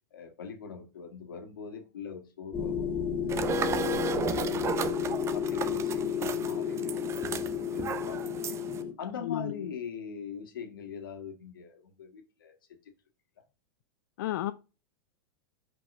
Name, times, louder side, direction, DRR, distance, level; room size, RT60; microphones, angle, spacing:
voice 1, 0.1-3.1 3.5-4.4 4.9-5.0 5.3-8.2 9.0-12.6 12.8-12.9 13.4-13.5, left 6 dB, 80° left, 1.7 m, -42 dB
sound 1, 2.5-8.9, left 8 dB, 15° left, 2.6 m, -32 dB
sound 2, 3.3-8.8, right 6 dB, 25° right, 0.7 m, -34 dB
voice 2, 14.2-14.5, left 14 dB, 65° left, 0.4 m, -32 dB
5.6 x 5.3 x 3.7 m
hypercardioid pair, 115°, 11 cm